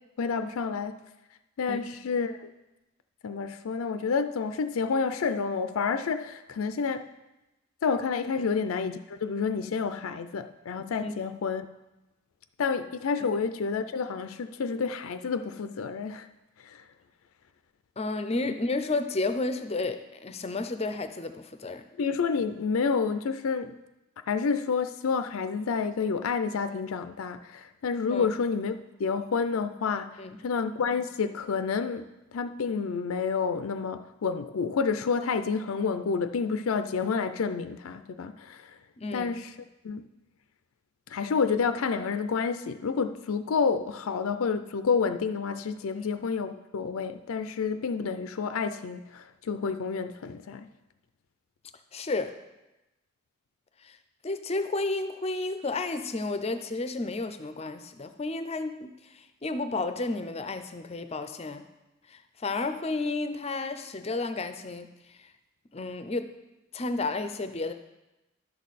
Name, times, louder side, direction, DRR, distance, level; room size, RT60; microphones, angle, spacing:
voice 1, 0.2-1.0 1.6-2.5 3.2-7.1 7.8-11.6 12.6-16.3 16.6-16.8 18.5-18.6 22.0-23.7 24.3-38.8 39.1-39.5 39.8-40.1 41.1-50.7, left 5 dB, 90° left, 10 dB, 0.4 m, -29 dB
voice 2, 18.0-21.8 28.1-28.3 30.2-30.4 39.0-39.3 45.9-46.1 51.9-52.3 53.8-54.0 54.2-61.6 62.1-65.3 65.7-66.3 66.7-67.7, left 3 dB, 30° left, 9 dB, 0.5 m, -32 dB
11.0 x 6.4 x 4.1 m, 0.99 s
head